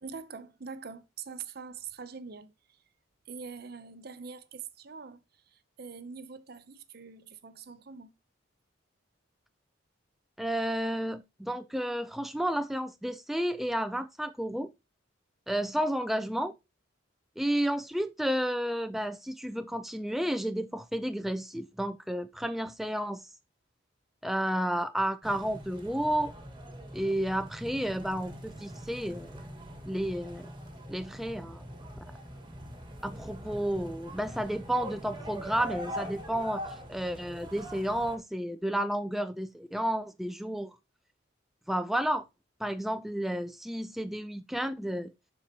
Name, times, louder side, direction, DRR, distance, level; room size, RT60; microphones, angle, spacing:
voice 1, 0.0-2.8 3.3-5.2 5.5-8.1, right 5 dB, 50° right, 0.6 m, -44 dB
voice 2, 10.4-14.7 15.5-16.5 17.4-23.2 24.2-26.3 26.9-29.4 29.9-30.5 30.9-31.6 33.0-40.8 41.7-42.3 42.6-45.1, equal, ahead, 0.3 m, -31 dB
sound 1, 25.2-38.2, equal, 25° right, 1.6 m, -43 dB
12.0 x 4.6 x 2.8 m
head